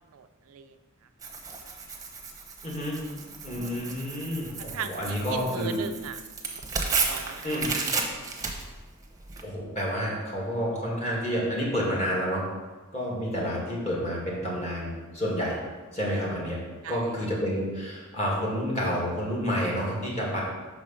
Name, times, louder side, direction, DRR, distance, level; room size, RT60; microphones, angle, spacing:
voice 1, 0.1-0.7 4.6-6.2 7.1-7.5 16.8-17.1, right 7 dB, 70° right, 9 dB, 0.4 m, -38 dB
Tearing, 1.2-9.4, right 4 dB, 15° right, 0.8 m, -33 dB
voice 2, 2.6-3.0 3.4-5.8 7.4-7.7 9.4-12.4 12.9-15.6 15.9-16.6 16.9-20.4, equal, 30° left, -4 dB, 2.0 m, -29 dB
6.1 x 4.9 x 5.7 m, 1.3 s
head